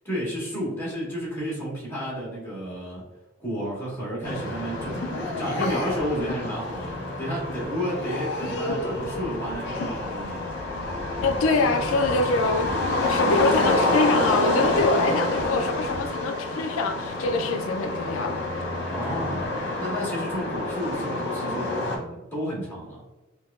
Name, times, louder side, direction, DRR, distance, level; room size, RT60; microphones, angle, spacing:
voice 1, 0.0-3.0 3.4-5.0 5.4-10.6 14.8-14.9 15.5-15.7 18.9-19.4 19.8-23.0, equal, 10° left, -6 dB, 1.4 m, -32 dB
sound 1, 4.2-22.0, left 2 dB, 55° left, 0.9 m, -28 dB
voice 2, 11.2-18.4, left 3 dB, 75° left, 6 dB, 0.3 m, -25 dB
4.6 x 2.2 x 2.3 m, 1.1 s
head